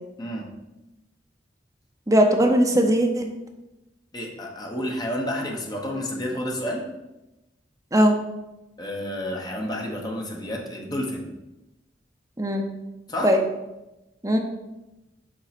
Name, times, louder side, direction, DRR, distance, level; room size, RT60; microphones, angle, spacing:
voice 1, 0.2-0.5 4.1-6.8 8.8-11.3 13.1-13.4, left 1 dB, 20° left, 0 dB, 1.1 m, -30 dB
voice 2, 2.1-3.3 7.9-8.1 12.4-12.6 13.2-13.4 14.2-14.4, equal, 20° right, 3 dB, 0.7 m, -19 dB
6.0 x 3.8 x 5.9 m, 0.98 s
head